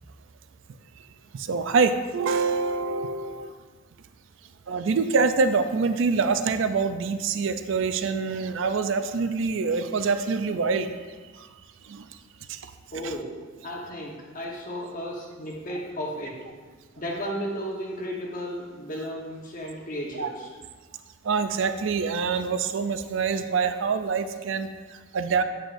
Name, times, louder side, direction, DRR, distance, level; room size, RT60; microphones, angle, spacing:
voice 1, 1.5-3.5 4.7-10.9 11.9-12.0 13.0-13.1 20.2-20.3 21.3-24.7 25.1-25.4, right 4 dB, 65° right, 9 dB, 0.4 m, -25 dB
voice 2, 12.9-13.3 13.6-16.4 17.0-20.5, equal, 40° left, -2 dB, 1.1 m, -34 dB
8.1 x 6.1 x 2.6 m, 1.4 s
head